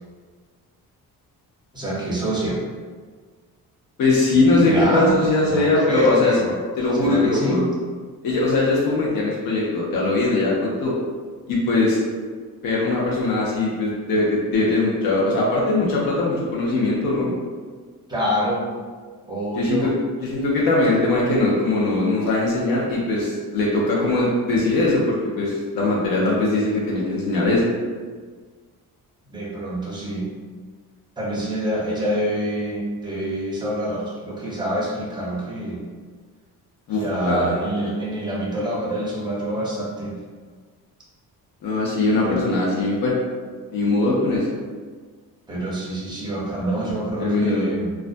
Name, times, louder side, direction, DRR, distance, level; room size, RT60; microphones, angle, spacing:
voice 1, 1.7-2.6 4.6-5.2 5.5-6.6 6.9-7.6 18.1-18.7 19.3-19.9 29.3-30.3 31.2-35.8 36.9-40.2 42.2-42.5 45.5-48.0, equal, 10° right, -5 dB, 0.5 m, -26 dB
voice 2, 4.0-6.3 6.8-7.6 8.2-10.9 11.5-12.0 12.6-17.3 19.5-19.9 20.2-27.7 36.9-37.7 41.6-43.1 43.7-44.5 47.2-47.7, left 2 dB, 70° left, -4 dB, 0.6 m, -21 dB
2.4 x 2.1 x 2.5 m, 1.5 s
cardioid pair, 145°, 36 cm